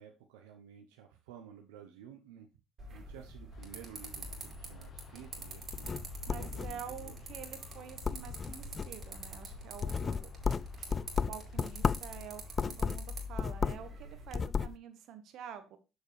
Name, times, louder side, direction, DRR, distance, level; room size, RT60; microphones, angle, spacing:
voice 1, 0.0-2.5 2.9-6.0 6.4-7.2 12.6-12.8, right 9 dB, 85° right, 4 dB, 0.8 m, -53 dB
sound 1, 2.8-14.3, right 2 dB, 45° right, 2.5 m, -46 dB
sound 2, 3.5-13.9, left 9 dB, 50° left, 1.0 m, -53 dB
sound 3, 5.6-7.1 7.5-7.8 8.0-9.1 9.5-12.1 12.5-13.9 14.2-14.8, left 5 dB, 35° left, 0.4 m, -34 dB
voice 2, 6.3-10.3 11.3-15.8, right 9 dB, 65° right, 9 dB, 1.2 m, -48 dB
7.1 x 6.3 x 3.2 m, 0.29 s
hypercardioid pair, 65°, 0 cm